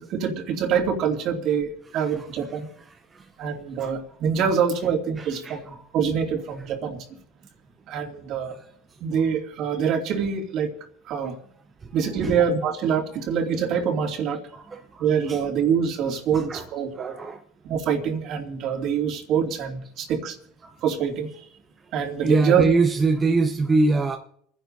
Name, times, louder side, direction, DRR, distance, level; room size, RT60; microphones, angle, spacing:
voice 1, 0.0-2.7 3.4-5.7 5.9-7.0 7.9-8.5 9.0-10.7 11.1-11.4 11.9-14.4 15.0-17.1 17.6-20.4 20.8-21.4 21.9-22.6, right 7 dB, 55° right, 2.5 m, -25 dB
voice 2, 5.4-5.8 11.8-11.9 12.2-12.3 14.5-15.4 16.3-16.6 16.9-17.4 22.2-24.2, right 3 dB, 25° right, 0.9 m, -23 dB
28.5 x 10.5 x 2.7 m
supercardioid pair, 100°, 0 cm